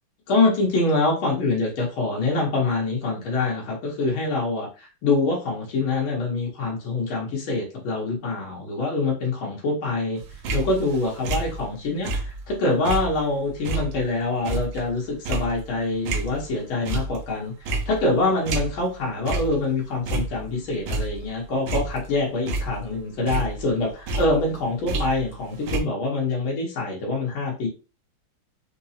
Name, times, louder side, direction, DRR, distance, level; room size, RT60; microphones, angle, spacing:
voice 1, 0.3-10.2 10.5-27.7, left 2 dB, 75° left, -2 dB, 2.0 m, -25 dB
sound 1, 10.2-12.5 12.8-16.5 16.8-17.3 17.6-19.0 19.2-19.6 19.9-21.3 21.7-23.0 23.3-25.4 25.7-25.8, right 2 dB, 75° right, 1.4 m, -29 dB
5.1 x 2.0 x 2.8 m, 0.33 s
omnidirectional pair, 2.3 m